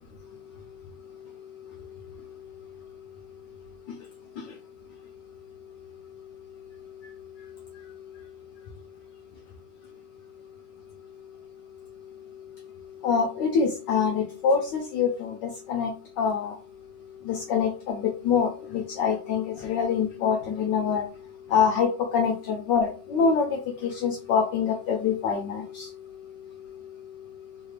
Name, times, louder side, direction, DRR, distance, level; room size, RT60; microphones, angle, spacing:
voice 1, 13.0-16.6 17.3-21.0 21.5-25.9, left 6 dB, 75° left, 2 dB, 1.1 m, -25 dB
3.4 x 3.1 x 2.4 m, 0.36 s
omnidirectional pair, 2.2 m